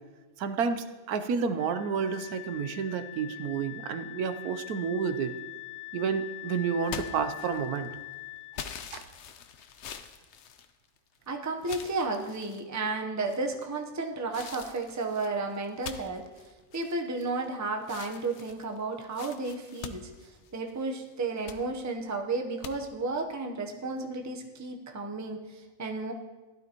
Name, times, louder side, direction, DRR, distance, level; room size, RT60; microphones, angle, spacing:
voice 1, 0.4-5.4 5.9-7.9 8.9-9.0, right 6 dB, 90° right, 11 dB, 1.2 m, -30 dB
Wind instrument woodwind instrument, 1.6-8.6, left 20 dB, 85° left, 0.4 m, -43 dB
sound 1, 6.8-7.9 8.5-11.2 11.6-12.6 13.3-13.7 14.3-17.5 17.8-20.8 21.2-21.6 22.6-22.7, left 7 dB, 60° left, 0.8 m, -44 dB
voice 2, 11.3-16.2 16.7-26.1, right 3 dB, 15° right, 3 dB, 0.6 m, -33 dB
16.0 x 11.5 x 2.9 m, 1.3 s
omnidirectional pair, 1.5 m